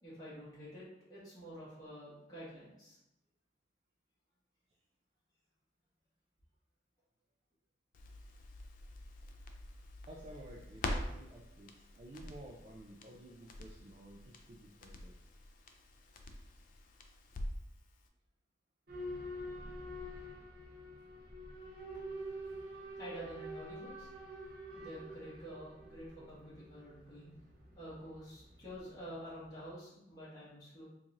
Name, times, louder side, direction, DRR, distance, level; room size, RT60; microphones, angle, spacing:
voice 1, 0.0-3.0 23.0-24.1 24.7-27.3 27.7-30.8, equal, 20° left, -11 dB, 1.4 m, -49 dB
Crackle, 7.9-17.7 18.0-18.1, left 1 dB, 50° left, 0.4 m, -45 dB
voice 2, 10.1-15.2, right 1 dB, 35° right, -3 dB, 0.3 m, -53 dB
Boat Water vehicle / Alarm, 18.9-29.5, equal, 60° right, 0.9 m, -47 dB
3.8 x 3.0 x 2.5 m, 0.85 s
head